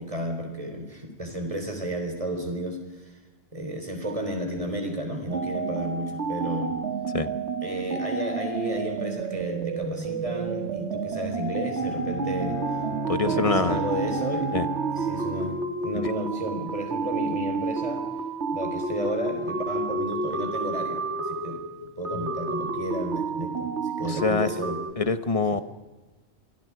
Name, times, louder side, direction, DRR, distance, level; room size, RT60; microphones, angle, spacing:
voice 1, 0.0-3.1 3.5-6.8 7.6-12.6 13.2-14.5 15.0-18.0 18.5-21.6 22.0-24.8, right 1 dB, 30° right, 4 dB, 4.1 m, -32 dB
sound 1, 5.3-24.9, right 4 dB, 80° right, 2.6 m, -30 dB
Bowed string instrument, 11.8-15.9, right 2 dB, 50° left, 1.4 m, -36 dB
voice 2, 13.1-13.8 14.5-14.7 16.0-16.1 24.0-24.5 25.0-25.6, left 4 dB, 30° left, 11 dB, 1.2 m, -25 dB
28.5 x 24.0 x 4.9 m, 1.2 s
omnidirectional pair, 1.1 m